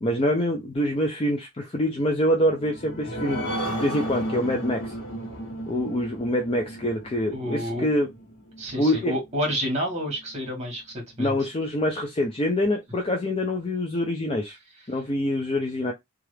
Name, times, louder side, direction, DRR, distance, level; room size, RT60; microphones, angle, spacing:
voice 1, 0.0-3.4 3.7-4.9 5.7-8.1 8.8-9.1 11.2-14.5 14.9-15.9, left 1 dB, 25° left, 0.5 m, -25 dB
sound 1, 2.5-9.5 10.0-10.1 10.4-10.5, right 1 dB, 60° left, 1.2 m, -34 dB
voice 2, 7.3-7.9 8.6-11.3, equal, 30° right, 1.5 m, -29 dB
2.9 x 2.4 x 3.1 m
head